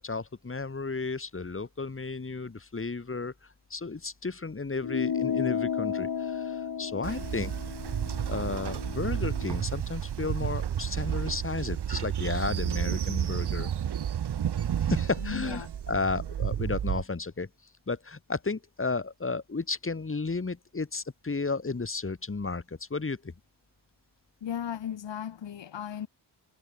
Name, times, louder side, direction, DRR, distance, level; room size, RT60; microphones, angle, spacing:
voice 1, 0.0-3.3 3.7-7.5 8.3-13.7 14.7-17.5 17.9-23.3, left 4 dB, 30° left, 7.9 m, -33 dB
sound 1, 4.8-9.6, left 7 dB, 60° left, 4.8 m, -33 dB
Train, 7.0-17.0, right 9 dB, 65° right, 1.6 m, -31 dB
voice 2, 15.2-15.7 24.4-26.1, left 9 dB, 85° left, 4.1 m, -36 dB
wide cardioid pair, 125°, 43 cm